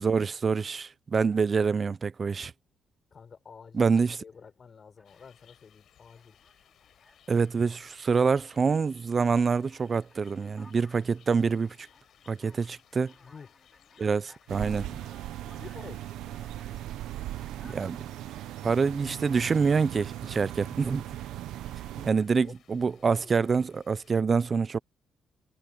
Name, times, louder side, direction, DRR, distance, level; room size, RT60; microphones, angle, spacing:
voice 1, 0.0-2.5 3.7-4.2 7.3-11.9 12.3-13.1 14.0-15.0 17.6-18.0 18.6-21.1 22.1-24.8, right 5 dB, 40° right, 0.5 m, -26 dB
voice 2, 3.1-3.9 4.2-6.4 13.2-13.6 15.4-16.4 18.6-18.7 22.0-23.4, left 6 dB, 45° left, 7.0 m, -50 dB
Alarm, 4.3-4.5 5.0-5.6 6.2-8.8 9.2-16.8 17.3-17.8, left 2 dB, 15° left, 5.7 m, -60 dB
sound 1, 5.0-24.2, left 10 dB, 70° left, 6.6 m, -62 dB
sound 2, 14.5-22.1, right 13 dB, 85° right, 0.8 m, -38 dB
cardioid pair, 90°, 0 cm